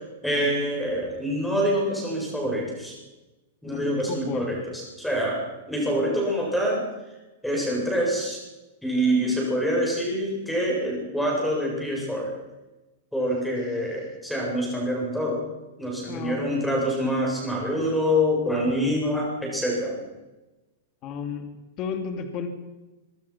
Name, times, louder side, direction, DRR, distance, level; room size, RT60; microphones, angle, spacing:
voice 1, 0.2-2.9 3.6-6.9 7.4-8.4 8.8-12.3 13.1-15.4 15.8-20.0, equal, ahead, -2 dB, 7.8 m, -26 dB
voice 2, 3.6-4.5 16.1-16.8 18.7-19.0 21.0-21.5 21.8-22.5, left 6 dB, 30° left, 6 dB, 2.6 m, -33 dB
25.0 x 25.0 x 6.1 m, 1.1 s
supercardioid pair, 170°, 0 cm